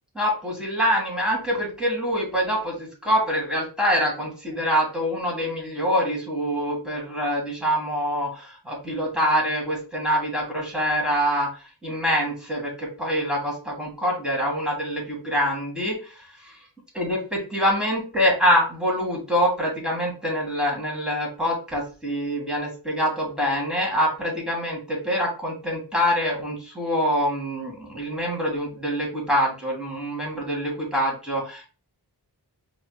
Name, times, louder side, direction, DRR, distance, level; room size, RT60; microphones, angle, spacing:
voice 1, 0.2-16.6 16.9-31.7, equal, ahead, -4 dB, 2.1 m, -25 dB
4.9 x 3.1 x 2.3 m, 0.34 s
wide cardioid pair, 45°, 42 cm